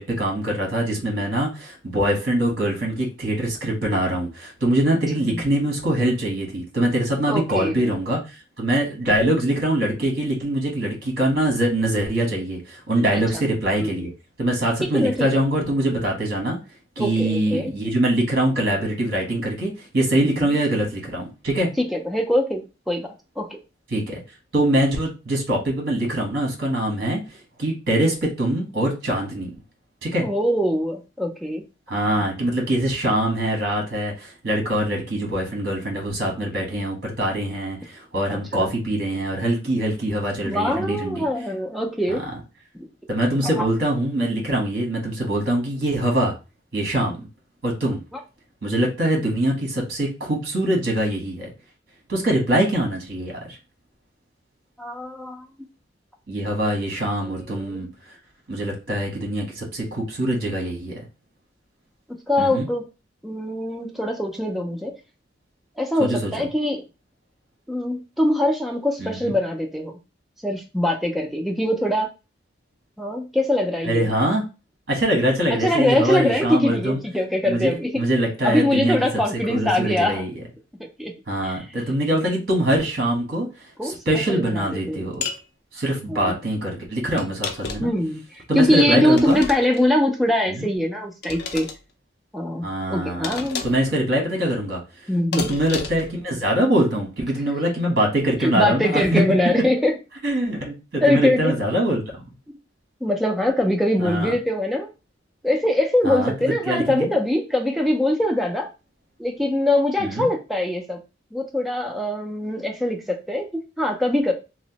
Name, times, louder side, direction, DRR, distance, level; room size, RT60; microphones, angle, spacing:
voice 1, 0.0-8.2 8.6-14.1 14.4-16.6 17.0-21.7 23.9-24.2 24.5-27.2 27.6-29.5 30.0-30.2 31.9-41.2 43.1-46.3 46.7-47.3 47.6-48.0 48.6-51.5 52.1-53.6 56.3-57.9 58.5-61.0 62.4-62.7 66.0-66.3 69.0-69.3 73.8-74.4 74.9-77.0 77.4-79.2 79.5-80.4 81.3-83.5 83.8-85.2 85.7-87.9 88.5-89.4 90.5-90.7 92.6-93.3 93.6-94.8 95.3-99.2 100.2-102.2 104.0-104.3 106.0-106.3 106.7-107.1 110.0-110.3, right 1 dB, 55° right, 1 dB, 1.0 m, -23 dB
voice 2, 7.3-7.9 13.1-13.4 13.8-14.1 14.8-15.3 17.0-17.7 20.2-20.6 21.8-23.5 30.2-31.6 32.2-32.3 38.3-38.7 40.4-42.2 42.8-42.9 43.6-43.7 54.8-55.4 57.2-57.9 62.3-62.8 63.2-64.9 65.8-66.8 67.7-69.9 70.4-72.1 73.0-74.1 75.6-78.0 78.4-80.2 81.0-81.1 81.4-81.6 83.8-84.0 84.3-85.1 86.1-86.4 87.8-88.2 88.5-91.7 92.3-93.6 95.1-95.5 98.4-99.9 101.0-101.6 102.5-102.6 103.0-104.9 105.4-108.7 109.2-111.0 111.3-114.3, left 1 dB, ahead, 1 dB, 0.5 m, -23 dB
sound 1, 85.2-85.4 87.2-88.0 89.1-89.9 91.2-91.8 93.2-93.9 95.3-96.1, left 5 dB, 60° left, 0.4 m, -31 dB
3.0 x 2.1 x 2.8 m, 0.29 s
head